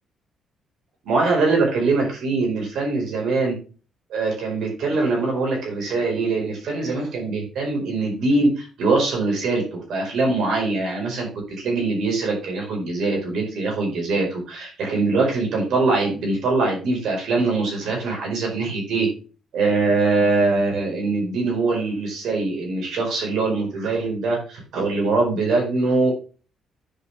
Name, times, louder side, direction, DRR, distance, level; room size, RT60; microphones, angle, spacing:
voice 1, 1.0-3.6 4.1-19.1 19.5-26.1, right 3 dB, 75° right, 0 dB, 4.8 m, -22 dB
10.0 x 5.8 x 3.5 m, 0.36 s
cardioid pair, 90°, 0 cm